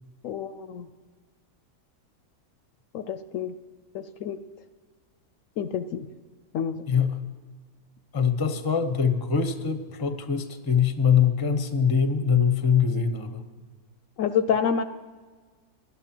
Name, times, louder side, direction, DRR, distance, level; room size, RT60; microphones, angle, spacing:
voice 1, 0.2-0.9 2.9-3.5 3.9-4.4 5.6-6.1 6.5-6.9 14.2-14.8, left 7 dB, 65° left, 12 dB, 0.9 m, -28 dB
voice 2, 8.1-13.4, left 7 dB, 20° left, 9 dB, 0.6 m, -23 dB
17.5 x 11.5 x 6.0 m, 1.5 s
omnidirectional pair, 1.6 m